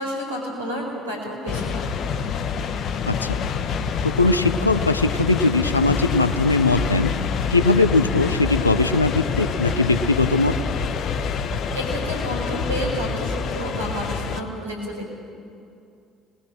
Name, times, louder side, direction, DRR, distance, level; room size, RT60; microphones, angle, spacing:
voice 1, 0.0-1.9 11.7-15.1, equal, 85° right, -2 dB, 4.7 m, -30 dB
sound 1, 1.5-14.4, left 6 dB, 50° left, 1.2 m, -26 dB
voice 2, 3.1-3.4 4.0-7.1 7.5-10.5, left 3 dB, 90° left, 12 dB, 0.7 m, -20 dB
25.5 x 20.5 x 6.2 m, 2.5 s
figure-of-eight pair, 55°, 0 cm